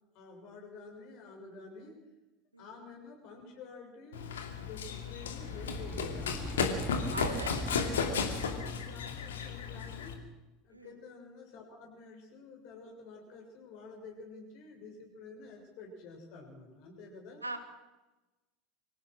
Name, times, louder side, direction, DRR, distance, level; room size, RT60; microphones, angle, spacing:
voice 1, 0.1-2.1 2.6-6.5 7.0-8.0 8.5-10.2 10.6-17.4, left 4 dB, 55° left, 3 dB, 7.0 m, -50 dB
Run, 4.1-10.1, left 6 dB, 70° left, 2.5 m, -34 dB
sound 1, 5.2-9.1, right 3 dB, 15° right, 2.2 m, -41 dB
voice 2, 7.1-7.8 8.1-8.3 10.7-10.9 17.4-17.6, right 2 dB, 90° right, 8 dB, 2.1 m, -41 dB
25.0 x 17.0 x 6.4 m, 1.1 s
figure-of-eight pair, 75°, 0 cm